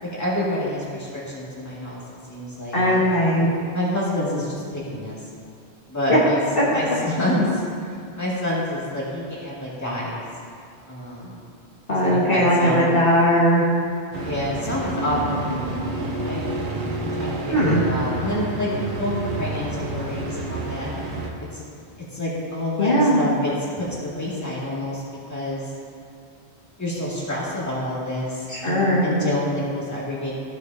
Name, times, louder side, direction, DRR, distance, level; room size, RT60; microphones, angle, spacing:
voice 1, 0.0-2.0 2.3-3.0 3.7-5.2 5.9-6.4 6.7-10.2 10.9-11.4 11.9-12.9 14.2-16.4 17.0-18.7 19.0-20.9 21.4-21.6 22.1-25.0 25.3-25.7 26.8-30.3, left 1 dB, 15° left, -8 dB, 2.0 m, -28 dB
voice 2, 2.7-3.5 6.1-6.2 11.9-13.6 17.5-17.8 22.8-23.2 28.5-29.1, equal, 55° left, -8 dB, 1.8 m, -18 dB
sound 1, 14.1-21.3, right 2 dB, 50° right, 1.0 m, -29 dB
15.0 x 6.4 x 2.7 m, 2.4 s
omnidirectional pair, 1.1 m